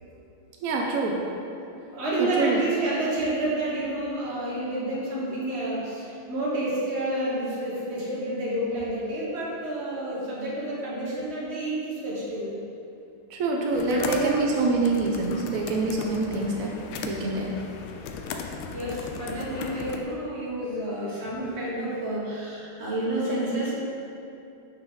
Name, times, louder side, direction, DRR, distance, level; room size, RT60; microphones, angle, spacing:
voice 1, 0.6-1.2 2.2-2.6 13.3-16.7 17.0-17.6, right 3 dB, 90° right, -1 dB, 0.7 m, -26 dB
voice 2, 1.7-12.5 13.8-14.6 18.2-23.8, right 1 dB, 35° right, -6 dB, 1.4 m, -29 dB
sound 1, 13.7-20.0, left 5 dB, 85° left, 1.5 m, -37 dB
5.9 x 5.6 x 3.9 m, 2.7 s
omnidirectional pair, 2.3 m